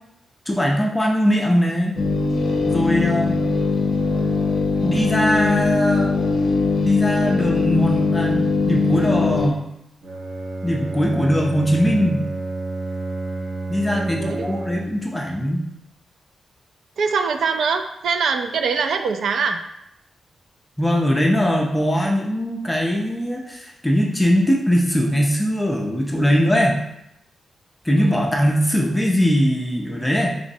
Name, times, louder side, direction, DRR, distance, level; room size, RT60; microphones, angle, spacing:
voice 1, 0.5-2.0 2.7-3.4 4.8-6.1 6.8-9.7 10.6-12.2 13.7-15.6 20.8-26.8 27.8-30.4, equal, 5° left, -1 dB, 0.4 m, -20 dB
sound 1, 2.0-9.5, left 3 dB, 50° left, 0.6 m, -20 dB
Bowed string instrument, 10.0-15.1, right 2 dB, 50° right, 0.9 m, -29 dB
voice 2, 13.9-14.6 17.0-19.6 28.0-28.3, right 5 dB, 70° right, 7 dB, 0.3 m, -23 dB
5.0 x 3.0 x 2.7 m, 0.81 s
wide cardioid pair, 160°, 0 cm